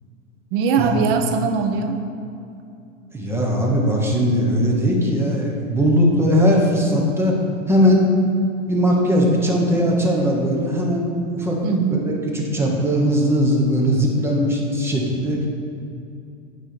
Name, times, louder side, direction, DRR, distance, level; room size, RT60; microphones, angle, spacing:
voice 1, 0.5-2.0 11.6-12.0, right 5 dB, 45° right, 5 dB, 0.9 m, -21 dB
voice 2, 3.1-7.4 7.7-8.0 8.7-11.6 11.9-15.5, equal, 5° right, -2 dB, 1.1 m, -19 dB
9.5 x 4.4 x 6.1 m, 2.6 s
supercardioid pair, 150°, 39 cm